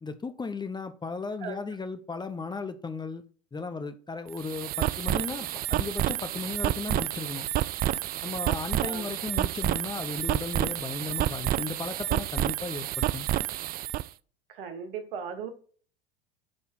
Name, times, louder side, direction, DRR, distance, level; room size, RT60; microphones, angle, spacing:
voice 1, 0.0-3.2 3.5-7.5 8.2-13.3, left 4 dB, 15° left, 0.9 m, -36 dB
sound 1, 4.3-14.1, right 14 dB, 30° right, 0.4 m, -29 dB
voice 2, 14.5-15.5, right 6 dB, 70° right, 1.6 m, -37 dB
8.7 x 4.3 x 5.5 m
hypercardioid pair, 80°, 29 cm